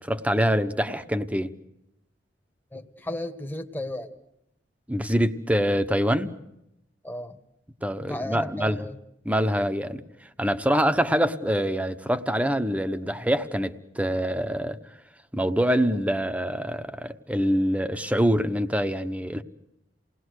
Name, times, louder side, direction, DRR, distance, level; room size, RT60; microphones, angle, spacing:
voice 1, 0.0-1.5 4.9-6.3 7.8-8.9 9.2-10.0 10.4-14.8 15.3-19.4, equal, 10° right, 1.1 m, -25 dB
voice 2, 2.7-4.1 7.0-7.4 8.1-9.0, left 1 dB, 10° left, 1.4 m, -34 dB
28.5 x 19.5 x 6.5 m
head